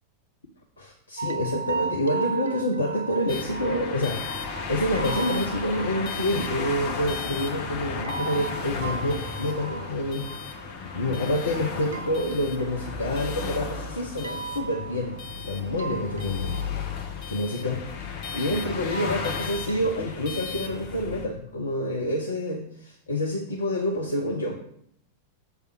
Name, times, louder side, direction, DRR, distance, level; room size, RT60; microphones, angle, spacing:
voice 1, 0.8-10.3 10.9-15.2 15.5-16.5 17.3-24.6, left 1 dB, 75° left, 0 dB, 0.9 m, -28 dB
sound 1, 1.2-20.8, right 5 dB, 70° right, 0.4 m, -38 dB
sound 2, 3.3-21.2, left 5 dB, 45° left, 1.3 m, -34 dB
6.9 x 3.5 x 6.0 m, 0.69 s
figure-of-eight pair, 90°, 0 cm